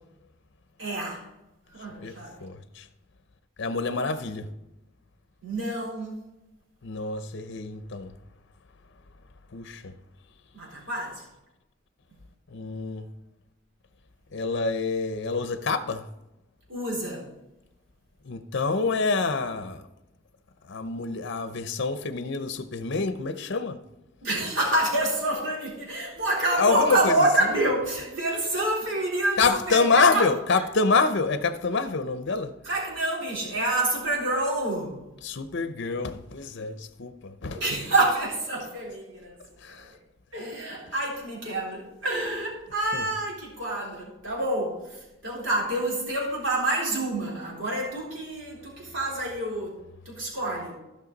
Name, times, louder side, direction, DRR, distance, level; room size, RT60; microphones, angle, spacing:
voice 1, 0.8-1.2 1.7-2.3 5.4-6.2 10.5-11.2 16.7-17.3 24.2-29.8 30.1-30.3 32.6-34.9 37.5-39.3 40.3-49.8 50.1-50.7, right 1 dB, 70° right, 3.7 m, -27 dB
voice 2, 2.0-2.9 3.6-4.5 6.8-8.1 9.5-9.9 12.5-13.1 14.3-16.1 18.2-19.8 20.7-23.8 26.6-27.2 29.4-32.5 35.2-37.6 39.6-39.9 42.9-43.1, left 4 dB, 65° left, 0.7 m, -26 dB
15.5 x 5.8 x 4.0 m
head